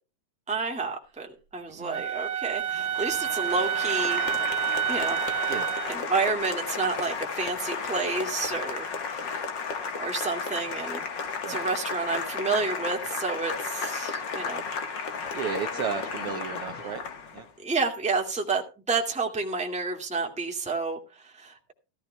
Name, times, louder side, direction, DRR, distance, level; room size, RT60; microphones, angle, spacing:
voice 1, 0.5-1.3 1.5-4.3 4.9-5.2 5.9-9.5 10.0-11.0 11.5-14.6 16.8-17.0 17.6-21.6, right 4 dB, 5° right, 1.2 m, -30 dB
voice 2, 1.7-2.0 5.5-5.8 11.4-11.7 15.3-17.0 17.3-17.5, right 6 dB, 85° right, 1.2 m, -34 dB
Wind instrument woodwind instrument, 1.9-6.0, right 10 dB, 35° right, 1.1 m, -29 dB
Applause, 2.7-17.5, left 5 dB, 50° left, 1.4 m, -33 dB
15.5 x 14.5 x 2.2 m
omnidirectional pair, 3.7 m